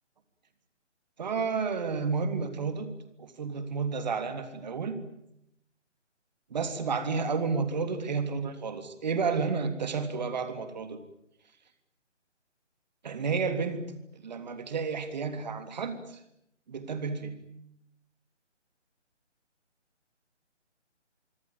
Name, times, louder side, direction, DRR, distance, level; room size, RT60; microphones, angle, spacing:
voice 1, 1.2-2.9 3.2-5.0 6.5-11.0 13.0-16.2 16.7-17.4, right 5 dB, 35° right, 9 dB, 3.4 m, -31 dB
25.0 x 25.0 x 9.1 m, 0.76 s
figure-of-eight pair, 150°, 36 cm